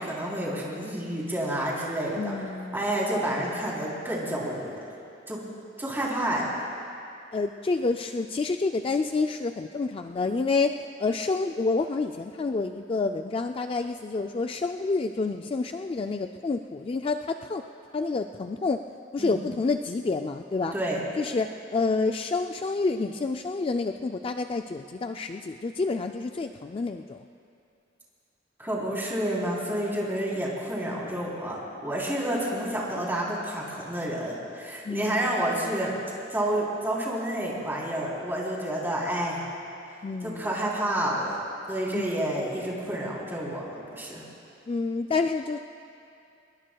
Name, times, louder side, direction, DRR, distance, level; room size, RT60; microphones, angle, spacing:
voice 1, 0.0-2.3 2.7-4.8 5.3-5.4 5.8-6.5 19.2-19.4 20.7-21.0 28.6-35.9 36.3-39.4 40.2-41.4 41.7-44.2, right 1 dB, 10° right, -5 dB, 3.4 m, -29 dB
voice 2, 2.2-2.9 7.3-17.6 17.9-18.8 19.1-20.7 21.2-27.2 34.8-35.2 40.0-40.5 41.9-42.1 44.7-45.6, left 3 dB, 30° left, 6 dB, 0.3 m, -28 dB
24.0 x 21.5 x 2.3 m, 2.6 s
head